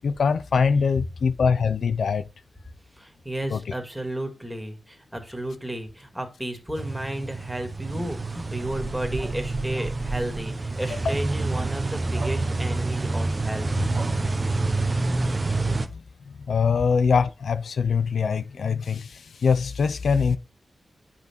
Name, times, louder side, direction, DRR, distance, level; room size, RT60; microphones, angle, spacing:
voice 1, 0.0-2.2 3.5-3.6 10.9-11.1 15.9-16.0 16.5-20.4, left 5 dB, 80° left, 0.6 m, -23 dB
voice 2, 3.0-13.9, right 1 dB, 5° right, 2.2 m, -33 dB
sound 1, 6.8-15.9, right 3 dB, 30° right, 1.0 m, -27 dB
9.5 x 5.9 x 4.4 m
wide cardioid pair, 115°, 0 cm